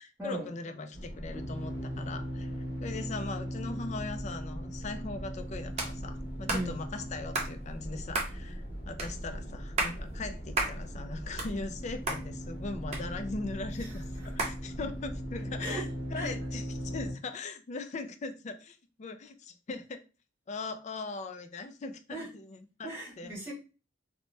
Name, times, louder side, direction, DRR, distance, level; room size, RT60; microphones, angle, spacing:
voice 1, 0.0-20.0 20.5-22.9 23.2-23.3, left 3 dB, 35° left, 0.3 m, -40 dB
sound 1, 0.9-17.1, equal, 60° left, 1.0 m, -39 dB
sound 2, 5.8-5.9 6.5-6.7 7.3-7.5 8.1-8.3 9.0-9.1 9.6-10.0 10.6-10.8 11.2-11.8 12.1-12.2 12.9-13.5 14.4-14.6, right 2 dB, 35° right, 0.7 m, -32 dB
voice 2, 22.8-23.5, right 1 dB, 15° right, 1.1 m, -37 dB
2.9 x 2.1 x 3.1 m
head